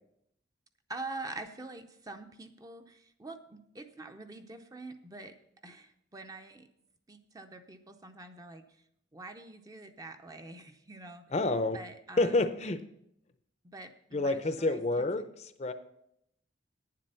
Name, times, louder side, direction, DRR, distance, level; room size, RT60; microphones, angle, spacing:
voice 1, 0.9-5.4 5.6-6.7 7.1-8.8 9.1-11.2 11.7-12.5 13.6-15.1, right 2 dB, 20° right, 7 dB, 0.5 m, -45 dB
voice 2, 11.3-11.8 12.2-12.8 14.1-15.3 15.6-15.7, left 2 dB, 35° left, 10 dB, 0.6 m, -28 dB
9.6 x 7.5 x 5.5 m, 0.76 s
head